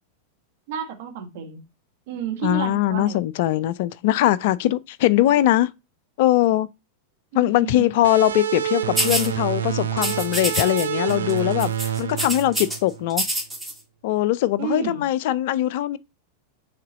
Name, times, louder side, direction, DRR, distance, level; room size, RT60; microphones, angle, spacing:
voice 1, 0.7-1.6 2.1-3.2 7.3-7.9 14.6-15.0, right 7 dB, 50° right, 1.4 m, -30 dB
voice 2, 2.4-5.7 6.2-6.7 7.3-13.2 14.0-16.0, left 14 dB, 50° left, 0.3 m, -21 dB
sound 1, 8.0-13.3, right 9 dB, 65° right, 0.4 m, -28 dB
sound 2, 9.0-9.3 10.0-10.8 11.1-11.3 11.6-12.8 13.1-13.7, right 1 dB, 5° right, 1.6 m, -26 dB
6.6 x 3.7 x 4.0 m
figure-of-eight pair, 90°, 0 cm